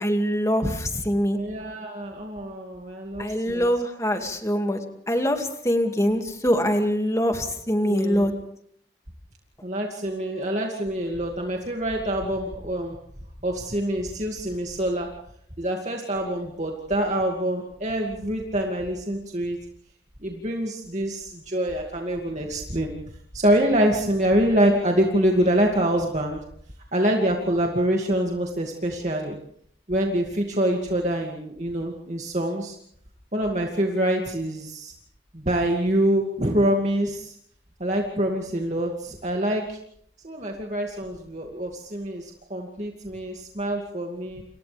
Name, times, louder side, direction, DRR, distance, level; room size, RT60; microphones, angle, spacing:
voice 1, 0.0-1.4 3.2-8.3, equal, 15° left, 4 dB, 2.3 m, -24 dB
voice 2, 1.3-3.7 7.8-8.3 9.6-13.0 13.4-15.1 15.6-19.6 20.2-22.9 23.3-26.4 26.9-29.4 29.9-32.8 33.3-34.9 35.3-37.4 37.8-39.8 40.2-44.4, right 1 dB, 40° right, 1 dB, 2.4 m, -25 dB
30.0 x 28.0 x 3.5 m, 0.68 s
head